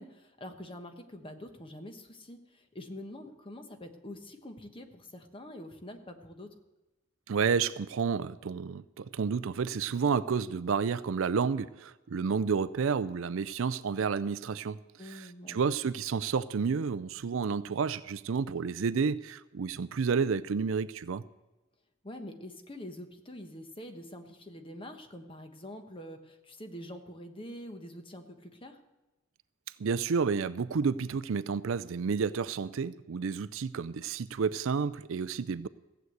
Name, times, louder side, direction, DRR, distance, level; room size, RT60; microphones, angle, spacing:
voice 1, 0.0-6.5 15.0-15.6 22.0-28.8, left 1 dB, 25° left, 6 dB, 1.1 m, -45 dB
voice 2, 7.3-14.8 15.0-21.2 29.8-35.7, right 5 dB, 65° right, 17 dB, 0.4 m, -30 dB
15.5 x 8.0 x 8.0 m, 1.1 s
head